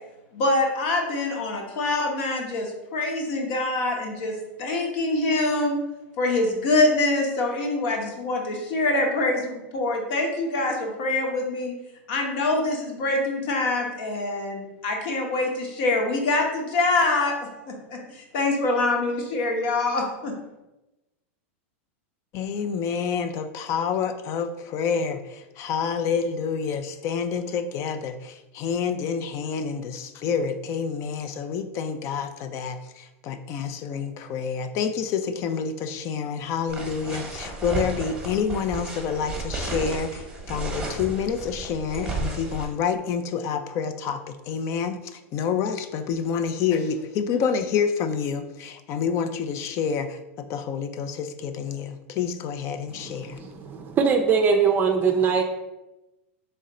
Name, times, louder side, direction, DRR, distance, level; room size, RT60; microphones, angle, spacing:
voice 1, 0.3-4.3 4.6-5.8 6.2-11.7 12.1-17.3 17.9-20.3, left 2 dB, 60° left, 1 dB, 1.2 m, -25 dB
voice 2, 22.3-53.4, left 6 dB, 45° left, 10 dB, 0.5 m, -28 dB
sound 1, 36.7-42.6, right 2 dB, 10° right, 1.1 m, -33 dB
voice 3, 52.9-55.4, right 6 dB, 30° right, 4 dB, 0.5 m, -22 dB
3.7 x 3.3 x 4.2 m, 0.99 s
supercardioid pair, 125°, 7 cm